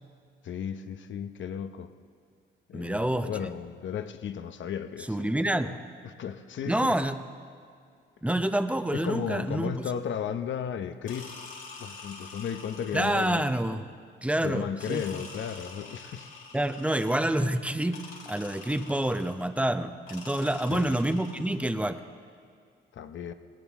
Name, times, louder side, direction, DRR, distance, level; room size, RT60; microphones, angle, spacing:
voice 1, 0.4-1.9 2.7-5.4 6.0-6.9 8.9-11.4 11.8-13.4 14.4-16.4 20.7-20.9 22.9-23.3, left 8 dB, 65° left, 0.9 m, -34 dB
voice 2, 2.7-3.5 5.1-5.8 6.7-7.2 8.2-9.7 12.9-13.8 14.2-15.0 16.5-22.0, right 1 dB, 5° right, 0.8 m, -27 dB
sound 1, 11.1-13.6 14.8-17.4 17.9-19.5 20.1-21.7, left 4 dB, 85° left, 3.0 m, -46 dB
19.5 x 18.0 x 3.6 m
cardioid pair, 80°, 21 cm